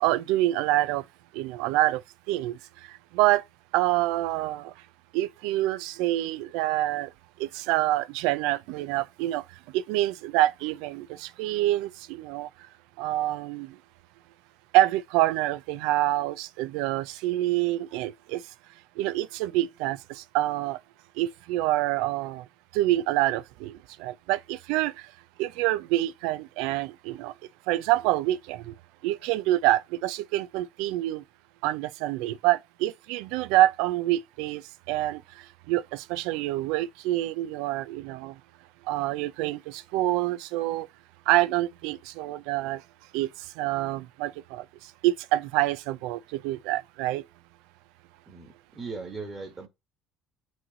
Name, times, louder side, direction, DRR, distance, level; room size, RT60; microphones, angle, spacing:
voice 1, 0.0-1.0 1.4-2.0 2.3-2.5 3.1-3.4 3.7-4.7 5.1-7.1 7.4-9.4 9.7-12.5 13.0-13.7 14.7-18.4 19.0-20.0 20.3-20.8 21.2-22.4 22.7-23.7 24.0-24.9 25.4-27.3 27.7-28.7 29.0-31.2 31.6-34.6 34.9-35.2 35.7-38.3 38.9-40.9 41.3-42.8 43.1-43.3 43.6-44.6 45.0-47.2, right 15 dB, 85° right, 0.4 m, -26 dB
voice 2, 48.3-49.7, right 4 dB, 15° right, 1.4 m, -38 dB
6.1 x 3.1 x 4.9 m
cardioid pair, 180°, 0 cm